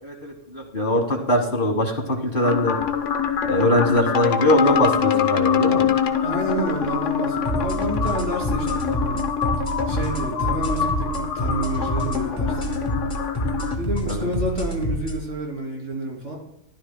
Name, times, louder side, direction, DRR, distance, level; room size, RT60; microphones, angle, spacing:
voice 1, 0.0-2.8 3.5-5.9 14.1-14.3, left 1 dB, 45° left, 4 dB, 1.7 m, -21 dB
sound 1, 2.4-13.8, left 7 dB, 80° left, 1.2 m, -24 dB
voice 2, 6.2-9.3 9.6-12.6 13.8-16.3, equal, 80° right, -1 dB, 3.5 m, -29 dB
sound 2, 7.4-15.2, right 1 dB, 25° left, 2.1 m, -28 dB
15.0 x 11.5 x 2.2 m, 0.78 s
omnidirectional pair, 1.2 m